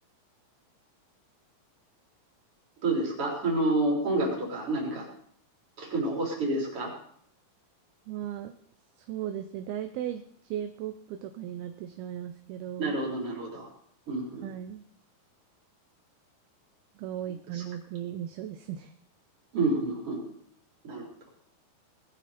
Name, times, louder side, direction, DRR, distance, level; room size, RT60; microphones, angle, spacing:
voice 1, 2.8-5.1 5.8-6.9 12.8-13.7 14.1-14.4 17.5-17.6 19.5-20.2 20.8-21.3, right 2 dB, 35° right, -2 dB, 4.4 m, -29 dB
voice 2, 8.1-8.6 9.1-13.0 14.4-14.8 17.0-18.9, right 10 dB, 75° right, 8 dB, 2.4 m, -37 dB
19.5 x 12.0 x 4.3 m, 0.66 s
omnidirectional pair, 4.7 m